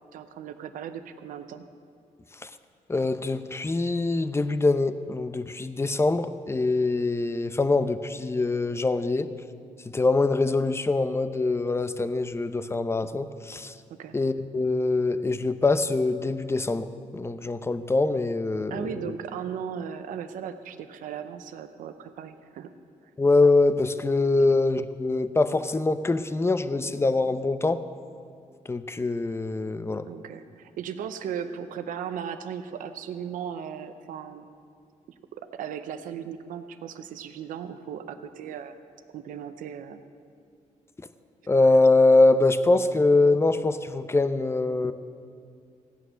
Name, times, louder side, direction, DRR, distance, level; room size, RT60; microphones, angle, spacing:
voice 1, 0.1-1.7 14.0-14.2 18.7-22.7 24.4-24.5 30.0-34.5 35.3-38.7 39.1-40.0, right 8 dB, 90° right, 9 dB, 0.7 m, -37 dB
voice 2, 2.9-9.3 9.9-13.7 14.1-18.9 23.2-27.8 28.7-30.1 41.5-44.9, left 3 dB, 20° left, 11 dB, 0.7 m, -23 dB
15.5 x 9.1 x 6.3 m, 2.3 s
cardioid pair, 80°, 13 cm